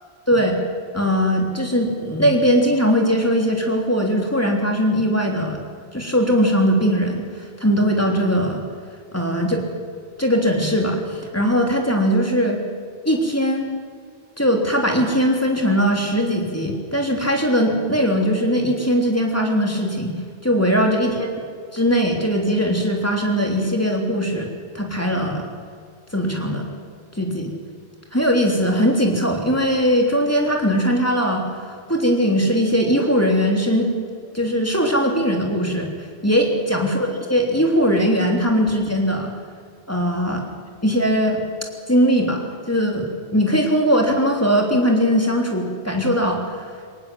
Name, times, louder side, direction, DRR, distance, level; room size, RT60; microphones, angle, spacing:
voice 1, 0.3-0.6 0.9-5.6 5.9-8.6 9.1-9.6 10.2-12.6 13.0-13.7 14.4-20.1 20.4-21.3 21.7-24.5 24.7-25.4 26.1-26.7 27.1-27.5 28.1-33.9 34.3-39.3 39.9-40.4 40.8-41.4 41.9-42.4 42.7-46.6, equal, 15° left, 1 dB, 3.4 m, -20 dB
23.5 x 18.5 x 7.8 m, 2.1 s
omnidirectional pair, 1.1 m